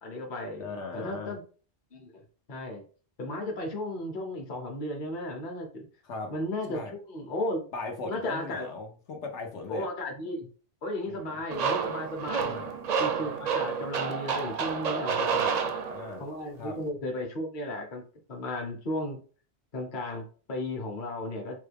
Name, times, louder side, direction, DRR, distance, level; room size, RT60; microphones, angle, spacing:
voice 1, 0.0-1.4 1.9-2.1 2.5-2.8 3.2-5.9 6.3-7.7 8.0-8.7 9.7-10.5 10.8-12.5 13.0-15.5 16.2-18.0 18.3-19.2 19.7-21.6, left 1 dB, 50° left, 1.0 m, -35 dB
voice 2, 0.6-1.3 6.0-6.3 6.7-6.9 7.7-9.9 11.1-11.4 12.4-12.7 15.5-16.2 16.6-16.8, left 3 dB, 90° left, 1.1 m, -39 dB
sound 1, 11.5-16.3, right 6 dB, 55° right, 0.4 m, -29 dB
3.8 x 2.2 x 3.3 m
omnidirectional pair, 1.1 m